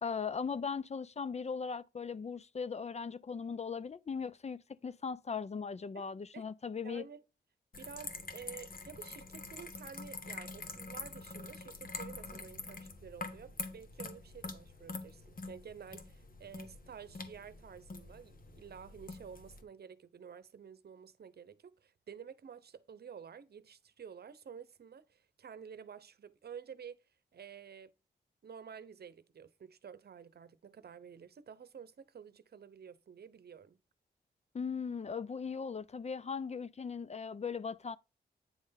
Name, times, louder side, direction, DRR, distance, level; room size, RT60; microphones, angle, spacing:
voice 1, 0.0-7.1 34.5-38.0, left 5 dB, 40° left, 0.5 m, -38 dB
voice 2, 5.9-6.5 6.8-7.2 7.8-27.0 27.3-27.9 28.4-33.8, right 7 dB, 65° right, 0.8 m, -51 dB
sound 1, 7.7-19.6, left 3 dB, 55° left, 1.5 m, -46 dB
9.4 x 3.3 x 5.6 m
cardioid pair, 60°, 18 cm